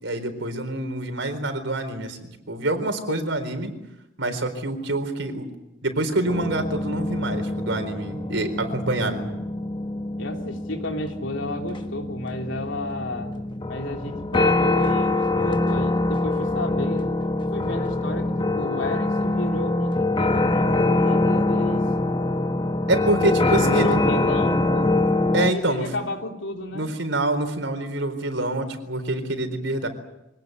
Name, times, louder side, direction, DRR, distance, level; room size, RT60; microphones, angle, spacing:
voice 1, 0.0-2.2 2.5-3.7 4.2-5.5 5.8-9.3 22.9-24.0 25.3-25.9 26.7-29.9, right 2 dB, 75° right, 7 dB, 4.2 m, -26 dB
sound 1, 6.2-25.5, left 2 dB, 25° left, 1.2 m, -24 dB
voice 2, 10.2-13.3 13.7-17.1 17.5-21.8 23.5-25.0 25.5-26.9, left 1 dB, 80° left, 3 dB, 3.5 m, -31 dB
24.5 x 18.5 x 9.6 m, 0.89 s
head